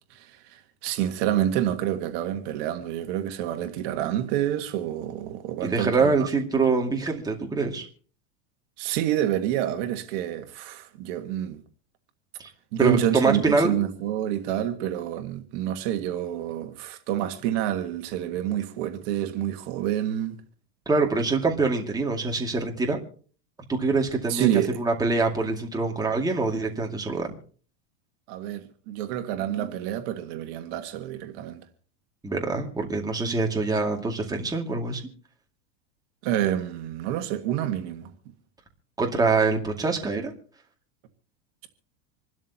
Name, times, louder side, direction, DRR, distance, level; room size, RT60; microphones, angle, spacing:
voice 1, 0.1-6.3 8.8-11.6 12.7-20.4 24.3-24.8 28.3-31.6 33.3-33.4 36.2-38.1, right 12 dB, 55° right, 1.7 m, -28 dB
voice 2, 5.6-7.9 12.4-12.5 12.8-13.7 20.9-23.0 23.7-27.3 32.2-35.0 39.0-40.3, right 3 dB, 10° right, 2.3 m, -25 dB
26.5 x 12.5 x 2.9 m
supercardioid pair, 140°, 37 cm